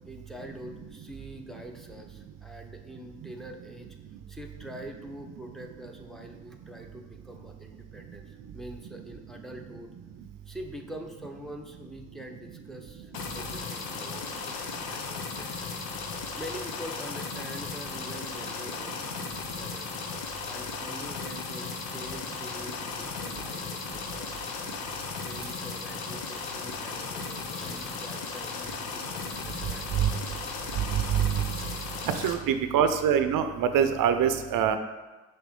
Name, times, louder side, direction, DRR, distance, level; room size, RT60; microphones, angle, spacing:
voice 1, 0.0-4.0 4.2-9.9 10.5-15.7 16.4-19.2 19.5-24.7 25.2-32.1, right 1 dB, ahead, 2 dB, 0.9 m, -45 dB
sound 1, 13.1-32.3, left 5 dB, 75° left, 0.8 m, -36 dB
voice 2, 30.8-31.4 32.0-34.8, right 8 dB, 60° right, 8 dB, 0.6 m, -25 dB
5.9 x 3.0 x 5.2 m, 1.2 s
hypercardioid pair, 45°, 37 cm